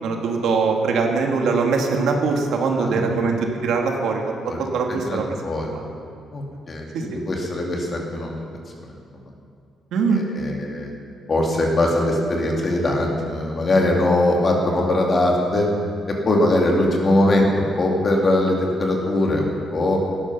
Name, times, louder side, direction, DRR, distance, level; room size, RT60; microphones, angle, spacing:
voice 1, 0.0-5.2 5.7-5.9 6.9-7.2 9.9-10.2, right 4 dB, 65° right, 2 dB, 2.1 m, -22 dB
voice 2, 5.0-5.7 6.3-8.5 8.8-8.9 10.1-10.9 11.3-15.7 16.1-20.0, left 1 dB, 25° left, 0 dB, 2.4 m, -21 dB
17.5 x 13.5 x 6.0 m, 2.3 s
cardioid pair, 180°, 0 cm